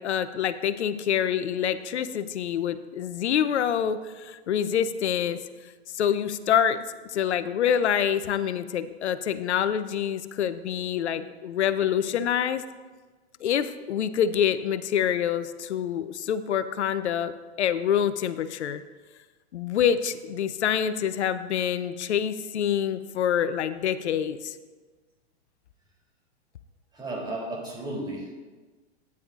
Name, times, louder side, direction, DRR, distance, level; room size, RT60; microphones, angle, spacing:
voice 1, 0.0-5.4 5.9-6.8 7.1-12.6 13.4-17.3 17.6-18.8 19.5-24.6, left 9 dB, 85° left, 13 dB, 0.6 m, -26 dB
voice 2, 26.9-28.3, right 1 dB, 10° right, -2 dB, 2.8 m, -34 dB
13.0 x 9.6 x 2.4 m, 1.3 s
hypercardioid pair, 120°, 33 cm